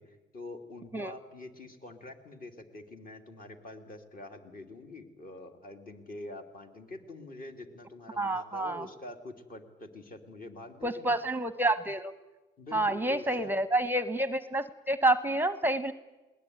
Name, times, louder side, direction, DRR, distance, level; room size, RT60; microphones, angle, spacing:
voice 1, 0.0-11.2 12.6-13.6, left 2 dB, 45° left, 5 dB, 3.0 m, -45 dB
voice 2, 8.2-8.9 10.8-12.1 12.7-15.9, right 1 dB, 10° right, 13 dB, 0.8 m, -28 dB
20.5 x 19.0 x 9.6 m, 1.2 s
cardioid pair, 90°, 20 cm